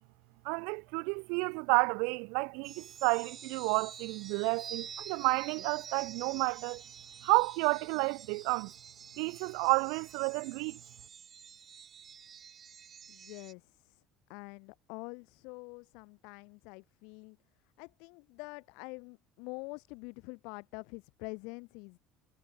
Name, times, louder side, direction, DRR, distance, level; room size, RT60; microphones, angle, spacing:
voice 1, 0.4-6.8 7.2-8.7 9.2-10.8, right 34 dB, 80° right, 1.7 m, -31 dB
sound 1, 2.6-13.5, right 8 dB, 30° right, 7.8 m, -49 dB
voice 2, 13.1-14.0 14.3-17.4 17.8-22.0, left 31 dB, 80° left, 2.4 m, -46 dB
cardioid pair, 140°, 0 cm